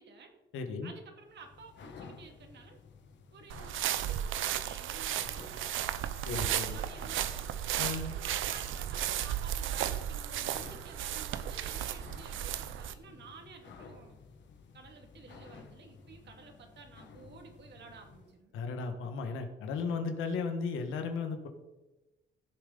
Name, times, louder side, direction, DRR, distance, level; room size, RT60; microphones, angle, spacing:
voice 1, 0.0-0.4 0.8-2.8 3.3-5.9 6.4-7.6 7.9-14.2 14.7-18.5, right 5 dB, 60° right, 3 dB, 2.2 m, -53 dB
voice 2, 0.5-0.9 6.2-6.8 7.8-8.1 18.5-21.5, left 4 dB, 90° left, 6 dB, 1.5 m, -35 dB
sound 1, 1.2-18.4, left 5 dB, 65° left, 1.5 m, -54 dB
sound 2, 3.5-12.9, right 11 dB, 80° right, 0.7 m, -34 dB
16.0 x 6.9 x 4.0 m, 1.1 s
cardioid pair, 90°, 20 cm